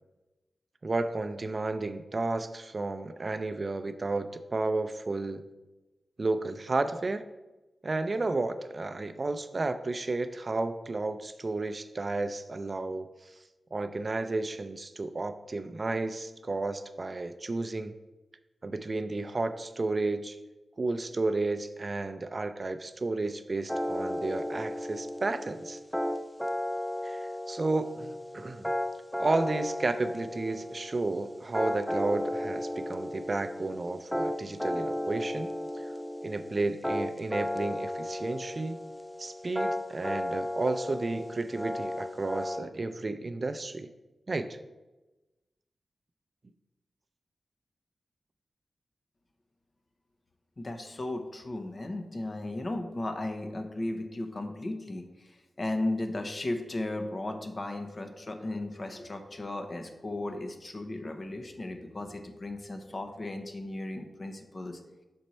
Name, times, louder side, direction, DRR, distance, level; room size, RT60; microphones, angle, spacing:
voice 1, 0.8-5.4 6.2-7.3 7.8-13.1 13.7-17.9 18.6-20.4 20.8-25.8 27.0-28.7 29.2-35.5 35.8-35.9 36.2-38.8 39.2-43.9 44.3-44.6, right 2 dB, 45° right, 10 dB, 0.4 m, -32 dB
sound 1, 23.7-42.6, left 1 dB, 5° left, 0.6 m, -34 dB
voice 2, 50.6-55.3 55.6-64.8, left 2 dB, 45° left, 6 dB, 0.8 m, -35 dB
6.3 x 4.3 x 4.1 m, 1.1 s
cardioid pair, 60°, 0 cm